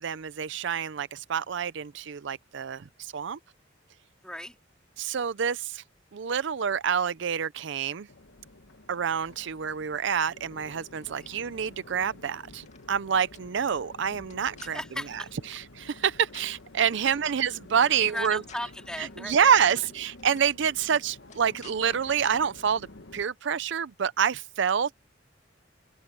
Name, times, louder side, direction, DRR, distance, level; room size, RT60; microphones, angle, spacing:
voice 1, 0.0-3.4 5.0-5.8 6.1-8.1 8.9-14.8 15.5-18.4 19.0-22.9 23.1-24.9, right 7 dB, 65° right, 0.5 m, -27 dB
voice 2, 4.2-4.6 11.1-11.3 14.6-15.3 17.0-17.1 18.0-19.6, left 1 dB, 5° left, 2.9 m, -37 dB
Crowd, 8.1-23.2, left 2 dB, 75° left, 1.5 m, -50 dB
sound 1, 12.5-12.9 13.3-13.4 14.2-14.7 16.0-16.5 17.5-17.7 18.0-18.8 19.8-19.9 20.2-20.5 21.3-21.8 22.2-22.3, left 7 dB, 40° left, 2.3 m, -52 dB
open air
head